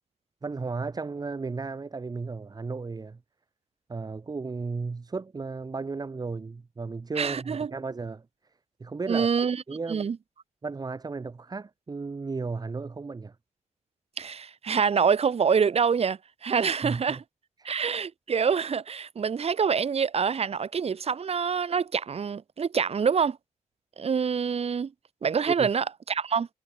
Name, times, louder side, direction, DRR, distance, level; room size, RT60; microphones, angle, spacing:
voice 1, 0.4-3.2 3.9-8.3 8.8-9.3 9.7-10.1 10.6-13.4 16.8-17.2 17.6-17.7 25.5-25.7, right 4 dB, 30° right, 5.8 m, -34 dB
voice 2, 7.2-7.7 9.1-9.6 9.9-10.2 14.2-17.2 17.6-23.4 24.0-24.9 25.2-26.5, right 6 dB, 50° right, 7.3 m, -26 dB
wide cardioid pair, 150°, 13 cm